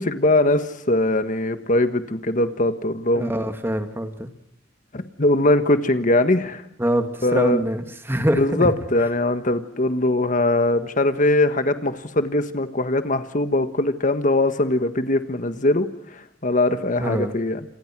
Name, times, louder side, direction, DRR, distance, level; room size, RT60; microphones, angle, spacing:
voice 1, 0.0-3.3 4.9-6.6 7.2-7.6 8.4-15.9 16.4-17.6, left 2 dB, 40° left, 9 dB, 1.6 m, -21 dB
voice 2, 3.1-4.3 6.8-8.7 17.0-17.3, right 1 dB, 10° right, 7 dB, 2.4 m, -24 dB
29.0 x 28.0 x 6.2 m, 0.73 s
head